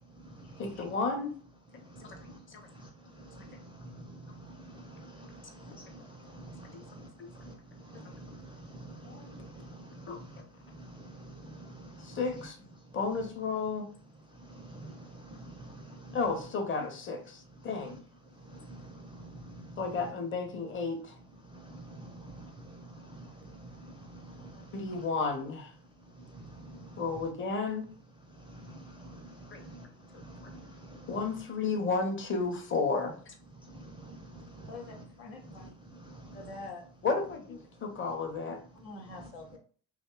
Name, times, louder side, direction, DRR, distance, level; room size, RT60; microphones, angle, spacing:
voice 1, 0.6-1.3 2.0-2.1 2.5-2.6 6.7-6.8 7.2-7.3 9.0-9.4 10.1-10.2 12.0-12.6 12.9-13.9 16.1-17.9 19.8-21.1 24.7-25.7 27.0-27.9 29.5-29.6 31.1-33.3 37.0-38.6, left 4 dB, 25° left, 4 dB, 0.7 m, -32 dB
voice 2, 1.9-2.4 2.8-2.9 3.3-7.1 7.4-7.5 7.9-10.4 10.7-12.2 14.5-16.2 18.5-19.8 21.5-23.3 23.6-24.6 26.3-27.0 28.5-29.8 30.2-31.1 33.7-35.0 35.4-35.7 36.0-36.5 39.2-39.3, right 2 dB, 10° right, 1 dB, 0.3 m, -48 dB
voice 3, 34.7-35.7 36.3-36.8 38.5-39.6, left 3 dB, 75° left, 1 dB, 0.8 m, -46 dB
2.6 x 2.1 x 2.2 m, 0.42 s
hypercardioid pair, 50°, 49 cm